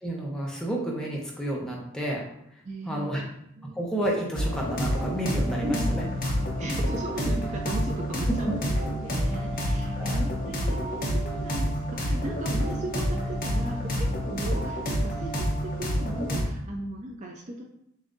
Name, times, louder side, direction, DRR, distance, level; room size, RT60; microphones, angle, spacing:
voice 1, 0.0-2.2 2.9-3.2 3.7-6.1 8.4-8.5 10.0-10.2, right 1 dB, 5° left, -3 dB, 0.8 m, -30 dB
voice 2, 2.6-3.8 5.6-8.5 9.0-17.6, right 1 dB, 35° right, 0 dB, 0.5 m, -37 dB
sound 1, 4.3-16.4, equal, 45° left, 0.9 m, -28 dB
6.8 x 2.7 x 2.6 m, 0.74 s
head